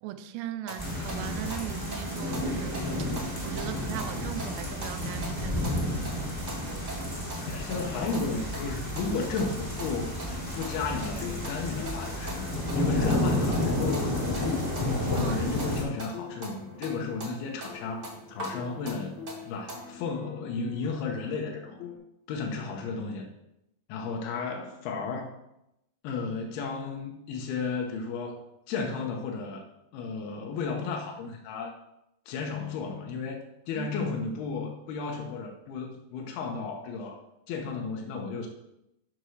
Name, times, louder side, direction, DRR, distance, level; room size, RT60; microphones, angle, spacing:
voice 1, 0.0-3.1 3.4-5.9 15.1-15.4 33.8-33.9, right 12 dB, 90° right, 11 dB, 2.7 m, -39 dB
sound 1, 0.7-20.0, right 2 dB, 65° right, 0.7 m, -44 dB
sound 2, 0.8-15.8, left 1 dB, 10° left, 1.5 m, -31 dB
voice 2, 7.4-10.1 10.5-12.5 12.7-14.7 15.1-21.8 22.3-23.3 23.9-25.4 26.0-29.6 29.9-31.7 32.3-37.2 37.5-38.5, left 4 dB, 75° left, 1 dB, 2.7 m, -33 dB
sound 3, 8.3-22.0, left 6 dB, 60° left, 2.3 m, -46 dB
6.8 x 4.7 x 6.3 m, 0.85 s
omnidirectional pair, 4.7 m